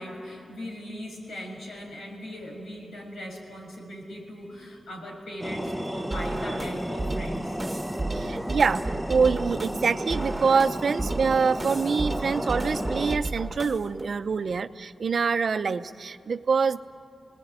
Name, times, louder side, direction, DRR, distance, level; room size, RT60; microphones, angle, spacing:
voice 1, 0.0-7.5, equal, 85° left, -1 dB, 6.7 m, -39 dB
sound 1, 5.4-13.2, equal, 5° left, 0.9 m, -33 dB
sound 2, 6.1-14.1, right 2 dB, 20° right, 1.6 m, -34 dB
voice 2, 8.1-16.8, right 5 dB, 65° right, 11 dB, 0.7 m, -25 dB
27.5 x 19.0 x 9.6 m, 2.4 s
wide cardioid pair, 95°, 0 cm